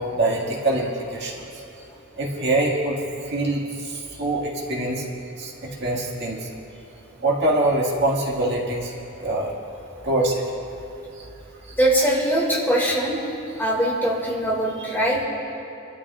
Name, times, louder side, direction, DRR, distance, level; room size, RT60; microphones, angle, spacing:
voice 1, 0.0-1.3 2.2-3.0 3.3-3.6 3.9-5.0 5.4-5.5 5.8-6.4 7.2-8.9 9.2-9.5 10.0-10.4, right 2 dB, 55° right, -3 dB, 1.9 m, -23 dB
voice 2, 11.8-13.2 13.6-15.2, right 1 dB, 10° left, -4 dB, 2.1 m, -21 dB
27.0 x 12.5 x 2.4 m, 2.8 s
head